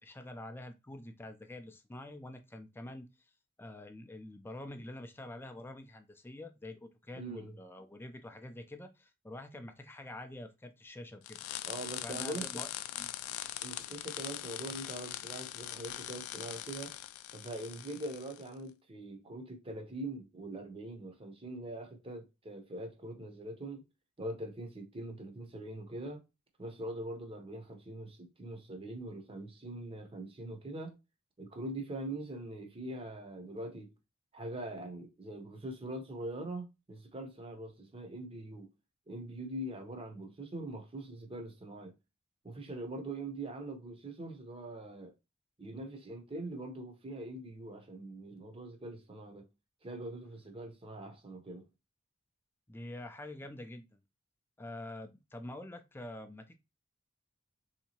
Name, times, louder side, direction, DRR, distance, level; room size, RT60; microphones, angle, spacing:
voice 1, 0.0-3.1 3.6-11.4 12.0-12.7 13.0-13.1 52.7-54.0 54.6-56.5, left 1 dB, 10° left, 0.4 m, -46 dB
voice 2, 7.1-7.6 11.6-12.6 13.6-17.0 17.3-23.9 24.2-26.2 26.6-31.0 31.4-33.9 34.3-38.7 39.1-41.9 42.4-45.1 45.6-49.4 49.8-51.7, right 1 dB, 25° right, 0.7 m, -43 dB
sound 1, 11.2-18.5, left 13 dB, 80° left, 0.3 m, -42 dB
3.4 x 2.8 x 2.8 m
head